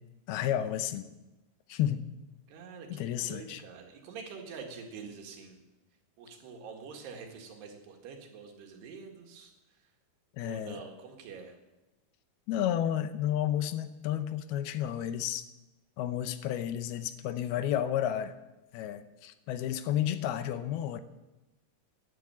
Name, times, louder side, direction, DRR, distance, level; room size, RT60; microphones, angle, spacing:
voice 1, 0.3-1.1 1.7-2.1 2.9-3.6 10.3-10.8 12.5-15.5 16.0-18.3 18.7-21.0, left 11 dB, 80° left, 11 dB, 2.7 m, -31 dB
voice 2, 2.5-5.6 6.2-9.5 10.4-11.5, right 5 dB, 90° right, 3 dB, 4.0 m, -46 dB
13.0 x 10.5 x 8.7 m, 1.0 s
omnidirectional pair, 4.5 m